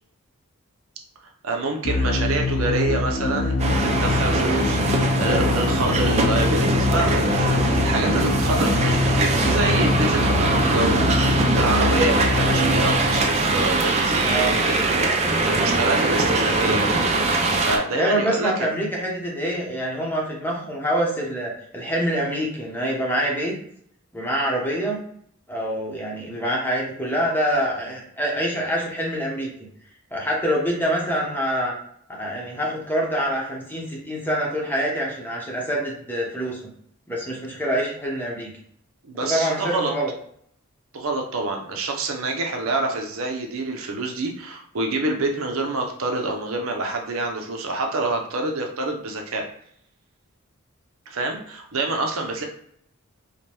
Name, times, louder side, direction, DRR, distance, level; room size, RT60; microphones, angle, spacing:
voice 1, 1.4-16.9 17.6-18.7 39.0-39.9 40.9-49.5 51.1-52.4, right 2 dB, 70° right, 3 dB, 0.6 m, -27 dB
sound 1, 1.8-13.8, left 3 dB, 80° left, 0.6 m, -24 dB
sound 2, 3.6-17.8, right 2 dB, 30° right, 0.4 m, -22 dB
voice 2, 14.3-14.6 17.9-23.5 24.1-25.0 25.5-29.5 30.1-31.7 32.1-36.6 37.1-38.5 39.2-40.1, equal, 10° left, -3 dB, 0.9 m, -25 dB
4.9 x 2.2 x 2.9 m, 0.66 s
head